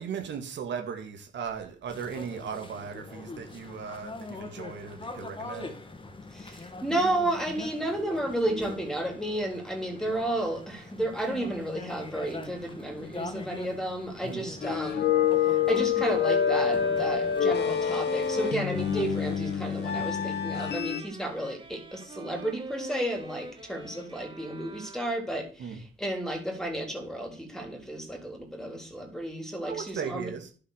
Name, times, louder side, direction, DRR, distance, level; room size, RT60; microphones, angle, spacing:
voice 1, 0.0-5.7 14.2-14.5 25.6-25.8 29.7-30.5, right 7 dB, 65° right, 2.1 m, -37 dB
sound 1, 1.9-19.4, left 3 dB, 25° left, 1.9 m, -42 dB
voice 2, 6.3-15.1 15.5-30.3, right 1 dB, ahead, 3.6 m, -32 dB
sound 2, 14.6-21.0, left 8 dB, 60° left, 1.4 m, -27 dB
sound 3, 15.9-25.4, right 2 dB, 25° right, 3.0 m, -43 dB
11.0 x 5.9 x 6.6 m
cardioid pair, 90°, 20 cm